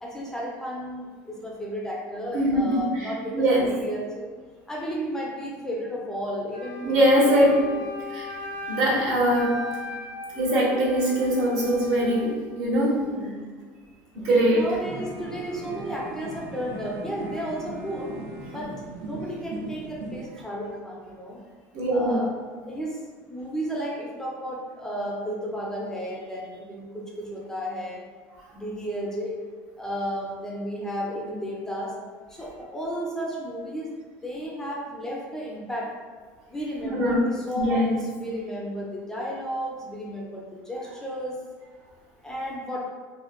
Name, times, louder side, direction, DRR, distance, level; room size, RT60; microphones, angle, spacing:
voice 1, 0.0-4.3 4.7-6.9 7.3-7.5 12.9-13.5 14.5-18.1 18.5-18.7 19.0-21.4 21.9-22.3 22.6-23.0 23.3-28.0 28.5-29.4 29.8-31.9 32.3-33.9 34.2-35.9 36.5-41.4 42.2-42.9, equal, 10° left, -3 dB, 0.4 m, -33 dB
voice 2, 2.3-3.7 6.8-7.6 8.1-8.3 8.7-9.6 10.3-13.0 14.1-14.6 21.7-22.2 36.8-37.2 37.6-37.9, equal, 65° right, -5 dB, 0.9 m, -22 dB
Wind instrument woodwind instrument, 6.5-12.4, left 3 dB, 85° left, 0.6 m, -37 dB
sound 1, 14.8-20.3, right 2 dB, 80° right, 0.5 m, -38 dB
3.0 x 2.1 x 2.4 m, 1.5 s
cardioid pair, 135°, 6 cm